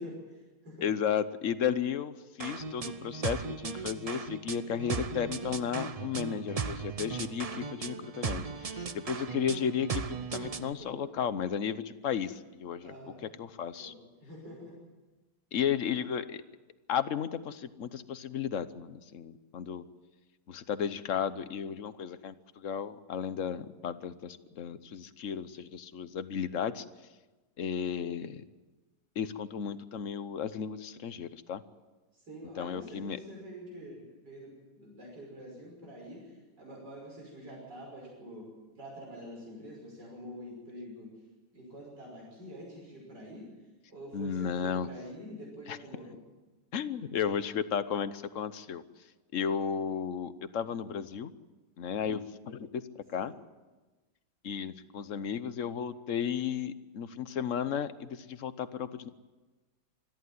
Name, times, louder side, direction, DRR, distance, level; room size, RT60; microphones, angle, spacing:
voice 1, 0.0-0.9 10.8-11.1 12.8-13.3 13.8-14.8 32.1-41.1 41.5-43.5 43.9-46.3 53.2-53.3, equal, 85° right, -3 dB, 6.5 m, -46 dB
voice 2, 0.8-12.9 13.4-13.9 15.5-16.4 16.9-19.8 20.5-26.8 27.6-28.4 29.2-31.6 32.6-33.2 44.1-44.9 45.7-45.8 46.7-48.8 49.3-51.3 51.8-52.8 53.1-53.3 54.4-59.1, left 8 dB, 55° left, 13 dB, 1.1 m, -34 dB
sound 1, 2.4-10.7, right 5 dB, 60° right, 0.4 m, -37 dB
22.5 x 14.0 x 9.4 m, 1.2 s
omnidirectional pair, 1.8 m